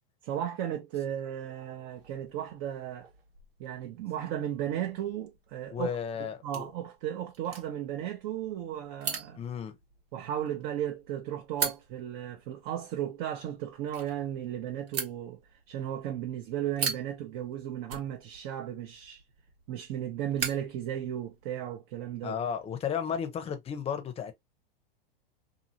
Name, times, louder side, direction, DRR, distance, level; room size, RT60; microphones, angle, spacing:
voice 1, 0.2-3.1 3.6-5.9 6.2-9.4 10.1-15.4 15.7-19.2 19.7-22.4, right 11 dB, 45° right, 0.7 m, -35 dB
sound 1, 1.9-21.5, right 6 dB, 85° right, 1.2 m, -42 dB
voice 2, 5.7-6.7 9.4-9.8 22.2-24.3, left 8 dB, 20° left, 0.7 m, -33 dB
2.7 x 2.6 x 2.7 m
hypercardioid pair, 110°, 29 cm